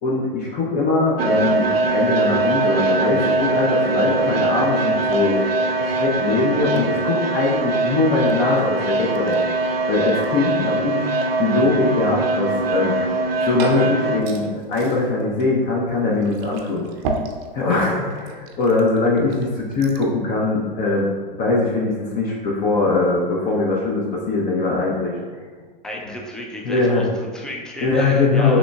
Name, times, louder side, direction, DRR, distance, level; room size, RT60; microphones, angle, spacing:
voice 1, 0.0-5.4 5.8-9.4 9.9-11.1 11.4-13.0 13.5-16.8 17.5-21.1 21.3-25.2 26.6-27.0 27.8-28.6, left 3 dB, 30° left, -3 dB, 0.7 m, -21 dB
sound 1, 1.2-14.2, right 3 dB, 90° right, 0.5 m, -22 dB
Glass / Fill (with liquid), 13.1-20.2, right 3 dB, 45° right, 0.6 m, -35 dB
voice 2, 25.8-28.6, left 1 dB, ahead, -1 dB, 0.3 m, -32 dB
6.1 x 3.2 x 2.3 m, 1.5 s
figure-of-eight pair, 100°, 29 cm